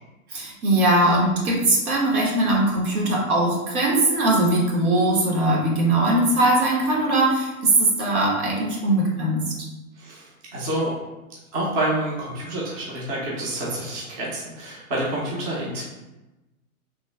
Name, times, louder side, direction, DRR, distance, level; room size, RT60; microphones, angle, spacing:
voice 1, 0.3-9.6, right 1 dB, 75° right, -2 dB, 1.1 m, -20 dB
voice 2, 9.9-10.9 11.5-15.8, right 1 dB, 25° right, -5 dB, 0.6 m, -28 dB
3.1 x 2.0 x 3.2 m, 1.0 s
hypercardioid pair, 150°, 43 cm